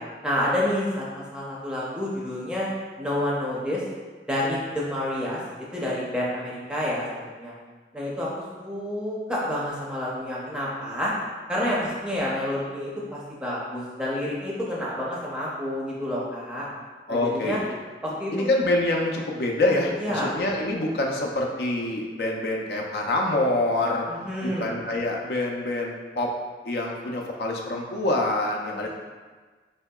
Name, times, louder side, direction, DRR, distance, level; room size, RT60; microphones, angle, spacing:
voice 1, 0.2-2.7 3.0-3.8 4.3-5.4 5.7-7.5 7.9-11.1 11.5-16.6 17.1-17.6 18.0-18.5 20.0-20.3 24.1-24.7, left 1 dB, 5° right, -6 dB, 0.5 m, -29 dB
voice 2, 17.1-17.7 18.3-24.0 24.4-26.3 26.6-28.9, left 2 dB, 65° left, -1 dB, 0.4 m, -26 dB
4.4 x 2.7 x 2.2 m, 1.4 s
head